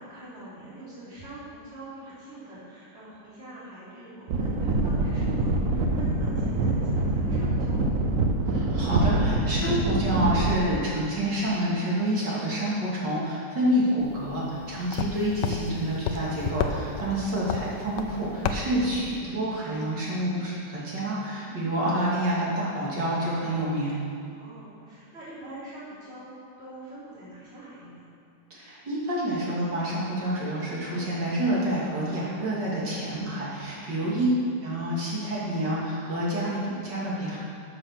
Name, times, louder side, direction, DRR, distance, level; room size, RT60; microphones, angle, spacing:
voice 1, 0.0-7.9 14.8-15.1 21.5-21.8 24.3-26.3 26.6-28.1 33.9-34.3, right 1 dB, 35° right, -11 dB, 3.5 m, -45 dB
sound 1, 4.3-10.6, right 2 dB, 55° right, 1.0 m, -25 dB
voice 2, 8.5-23.9 28.5-34.3 34.6-37.4, right 1 dB, 75° right, -7 dB, 3.4 m, -28 dB
sound 2, 14.0-19.2, left 6 dB, 80° left, 1.4 m, -33 dB
12.5 x 6.9 x 6.1 m, 2.4 s
omnidirectional pair, 1.9 m